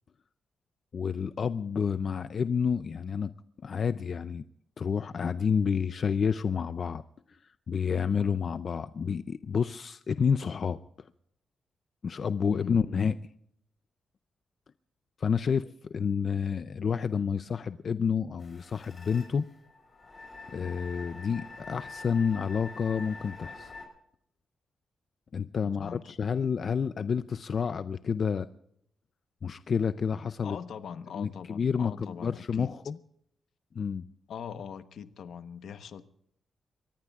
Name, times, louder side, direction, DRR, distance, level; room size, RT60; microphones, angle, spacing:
voice 1, 0.9-3.3 3.6-4.4 4.8-7.0 7.3-10.8 12.0-13.1 15.2-19.5 20.5-23.7 25.3-28.5 29.4-30.6 31.2-33.0 33.7-34.1, left 6 dB, 50° left, 0.5 m, -29 dB
voice 2, 12.5-13.0 25.8-26.2 30.4-32.7 34.3-36.0, left 7 dB, 75° left, 1.0 m, -42 dB
sound 1, 18.4-23.9, left 3 dB, 30° left, 6.4 m, -46 dB
24.0 x 21.0 x 2.4 m
cardioid pair, 120°, 0 cm